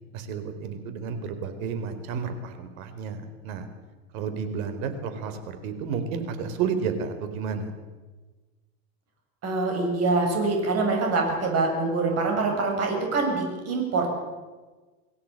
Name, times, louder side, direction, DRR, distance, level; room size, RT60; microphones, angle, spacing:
voice 1, 0.1-3.7 4.1-7.7, right 6 dB, 65° right, 8 dB, 4.4 m, -31 dB
voice 2, 9.4-14.1, right 3 dB, 35° right, 2 dB, 7.1 m, -25 dB
23.5 x 16.5 x 9.0 m, 1.3 s
supercardioid pair, 130°, 45 cm